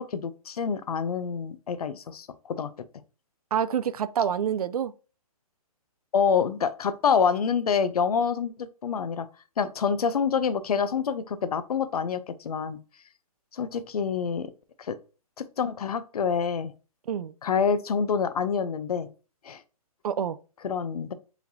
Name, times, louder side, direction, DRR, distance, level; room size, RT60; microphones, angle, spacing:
voice 1, 0.0-2.7 6.1-9.3 9.6-12.8 13.5-14.5 14.8-15.0 15.4-16.7 17.4-19.1 19.4-19.6 20.6-21.1, left 6 dB, 85° left, 0.6 m, -27 dB
voice 2, 3.5-4.9 17.1-17.3 20.0-20.4, right 8 dB, 85° right, 0.4 m, -27 dB
4.8 x 3.3 x 2.6 m
hypercardioid pair, 175°, 19 cm